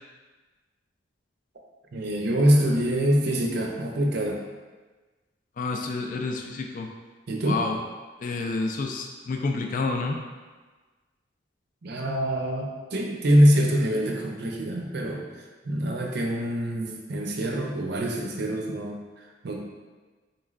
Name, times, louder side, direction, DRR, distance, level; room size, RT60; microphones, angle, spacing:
voice 1, 1.9-4.4 7.3-7.6 11.8-19.6, equal, 60° right, 1 dB, 0.5 m, -24 dB
voice 2, 5.6-6.9 7.5-7.8 8.2-10.2, left 3 dB, 45° left, 3 dB, 0.4 m, -29 dB
4.2 x 3.1 x 2.4 m, 1.3 s
head